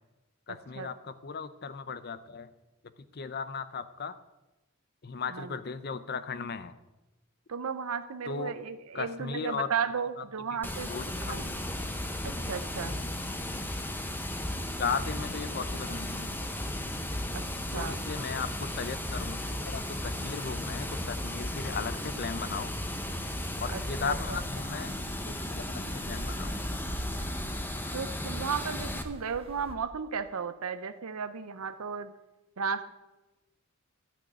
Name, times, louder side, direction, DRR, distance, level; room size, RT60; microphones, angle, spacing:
voice 1, 0.5-2.5 3.1-4.1 5.0-6.7 8.3-8.5 8.9-9.7 10.0-10.1 10.9-11.4 12.2-12.4 14.8-16.4 17.7-22.7 23.6-24.9 25.3-26.6, left 5 dB, 45° left, 13 dB, 0.6 m, -36 dB
voice 2, 7.5-10.9 11.2-11.5 12.2-12.9 17.3-17.4 17.7-18.0 23.7-24.4 27.9-32.1 32.6-32.9, right 6 dB, 85° right, 10 dB, 0.6 m, -34 dB
Water, 10.6-29.0, left 1 dB, 10° left, 0.8 m, -35 dB
sound 1, 15.6-29.7, right 1 dB, 25° right, 1.0 m, -46 dB
11.5 x 6.3 x 9.0 m, 1.1 s
head